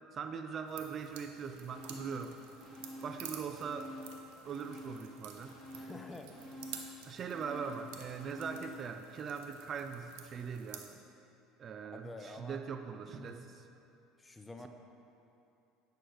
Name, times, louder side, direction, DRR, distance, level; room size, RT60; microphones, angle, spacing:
voice 1, 0.1-2.4 3.0-3.9 4.4-5.6 7.0-11.0 11.6-13.5, right 6 dB, 40° right, 8 dB, 0.3 m, -41 dB
sound 1, 0.7-10.9, right 8 dB, 80° right, 0.7 m, -52 dB
sound 2, 1.7-2.3 2.6-4.2 4.4-8.8 9.2-9.3, left 1 dB, 30° left, 1.8 m, -48 dB
voice 2, 5.7-6.3 11.9-12.6 13.1-13.4 14.2-14.7, left 2 dB, 15° left, 5 dB, 0.6 m, -48 dB
9.3 x 6.3 x 3.2 m, 2.8 s
supercardioid pair, 110°, 0 cm